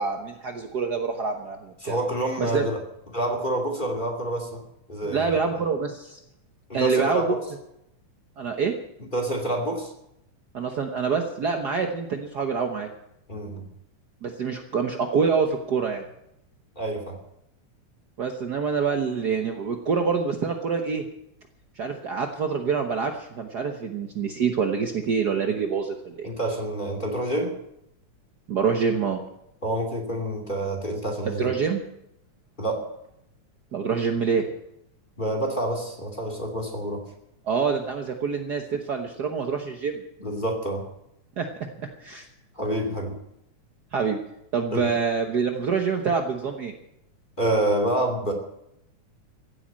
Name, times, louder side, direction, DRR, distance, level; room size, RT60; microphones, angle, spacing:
voice 1, 0.0-2.0 2.4-2.7 5.0-6.2 6.7-7.4 8.4-8.7 10.5-12.9 14.2-16.0 18.2-21.0 21.8-26.3 28.5-29.2 31.2-31.8 33.7-34.4 37.5-40.0 41.4-41.5 41.8-42.3 43.9-44.2 44.5-46.7, right 5 dB, 80° right, 4 dB, 0.9 m, -26 dB
voice 2, 1.8-2.8 3.1-4.6 4.9-5.4 6.7-7.4 9.0-9.9 13.3-13.7 16.8-17.2 26.2-27.6 29.6-31.5 32.6-32.8 35.2-37.0 40.2-40.8 42.6-43.2 44.7-44.9 47.4-48.3, right 1 dB, 15° left, 2 dB, 2.3 m, -27 dB
15.5 x 8.5 x 8.7 m, 0.81 s
omnidirectional pair, 3.4 m